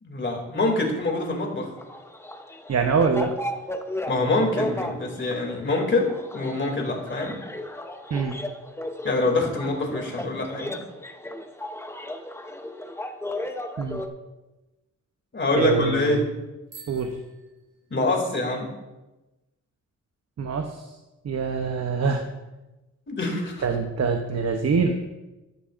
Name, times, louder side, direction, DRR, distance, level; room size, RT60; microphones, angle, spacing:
voice 1, 0.0-1.7 4.1-6.1 6.3-7.4 9.0-10.7 15.3-16.3 17.9-18.7 23.1-23.6, left 2 dB, 40° left, 1 dB, 2.6 m, -25 dB
sound 1, 1.8-14.1, left 1 dB, 10° left, 0.7 m, -35 dB
voice 2, 2.7-3.3 8.1-8.4 13.8-14.0 15.6-16.2 16.9-17.2 20.4-20.8 21.2-22.2 23.6-25.0, right 5 dB, 55° right, 5 dB, 0.8 m, -24 dB
Bicycle bell, 16.6-18.4, right 5 dB, 75° right, 4.0 m, -50 dB
13.5 x 12.0 x 2.5 m, 1.1 s
wide cardioid pair, 140°, 31 cm